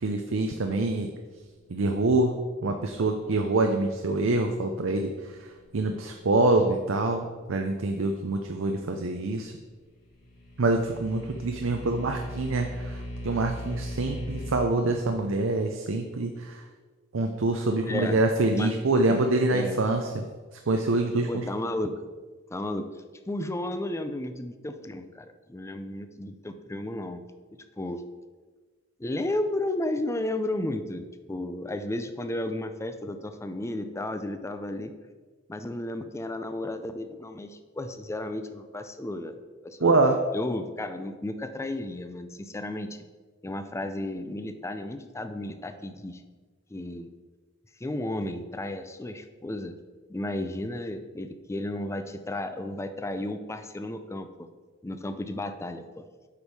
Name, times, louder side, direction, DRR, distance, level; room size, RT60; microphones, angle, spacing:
voice 1, 0.0-1.1 1.7-9.5 10.6-16.6 17.1-20.2 20.7-21.4 39.8-40.2, right 2 dB, 70° right, 4 dB, 0.6 m, -26 dB
sound 1, 10.0-14.6, equal, 50° left, 1.8 m, -38 dB
voice 2, 17.9-18.2 18.5-18.8 19.0-19.8 21.3-21.9 22.5-22.9 23.3-27.2 27.8-28.0 29.0-34.9 35.5-39.9 40.3-43.0 43.4-46.2 46.7-47.1 47.8-49.8 50.1-54.5 54.8-56.0, left 1 dB, 15° left, 9 dB, 0.5 m, -33 dB
8.3 x 5.3 x 4.7 m, 1.4 s
head